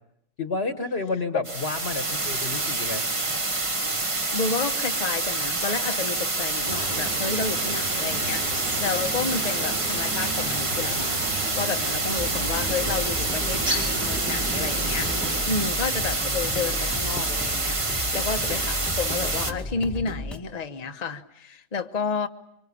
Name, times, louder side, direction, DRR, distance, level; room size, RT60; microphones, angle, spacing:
voice 1, 0.4-3.1, left 3 dB, 45° left, 8 dB, 1.6 m, -30 dB
sound 1, 1.4-19.5, right 2 dB, 25° right, 1.3 m, -27 dB
voice 2, 4.3-11.3 11.5-17.8 18.1-22.3, left 5 dB, 30° left, 7 dB, 1.1 m, -31 dB
sound 2, 6.6-15.4, right 1 dB, 85° right, 5.1 m, -34 dB
sound 3, 12.2-20.4, left 2 dB, ahead, 1.5 m, -34 dB
25.0 x 25.0 x 8.6 m, 0.80 s
omnidirectional pair, 1.5 m